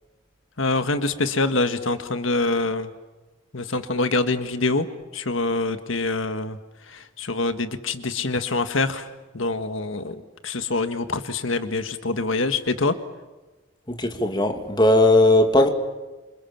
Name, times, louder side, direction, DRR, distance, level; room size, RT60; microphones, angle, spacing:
voice 1, 0.6-2.9 3.5-4.9 5.1-6.6 6.9-9.1 9.3-13.0, left 3 dB, 80° left, 1.6 m, -25 dB
voice 2, 13.9-15.7, left 1 dB, 20° left, 2.6 m, -18 dB
28.5 x 27.0 x 7.3 m
head